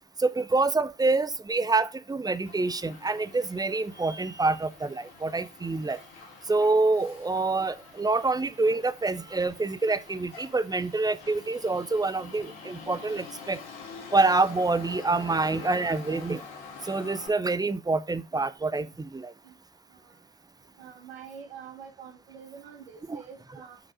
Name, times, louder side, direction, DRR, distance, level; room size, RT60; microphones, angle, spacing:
voice 1, 0.2-6.0 6.5-13.6 14.1-16.4 16.8-19.3 23.1-23.2, right 3 dB, 15° right, 0.7 m, -26 dB
Motor vehicle (road), 2.4-17.3, left 5 dB, 70° left, 2.3 m, -46 dB
voice 2, 20.8-23.8, right 7 dB, 85° right, 1.6 m, -46 dB
6.1 x 5.0 x 4.9 m
figure-of-eight pair, 45°, 30 cm